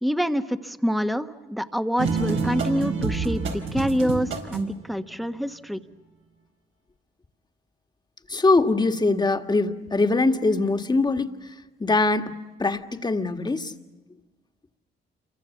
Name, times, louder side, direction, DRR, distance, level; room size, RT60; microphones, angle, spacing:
voice 1, 0.0-5.8, equal, ahead, 9 dB, 1.2 m, -26 dB
sound 1, 2.0-4.8, right 4 dB, 85° right, 4.8 m, -27 dB
voice 2, 8.3-13.7, left 3 dB, 20° left, 6 dB, 1.7 m, -23 dB
28.5 x 23.5 x 7.2 m, 1.3 s
cardioid pair, 90°, 20 cm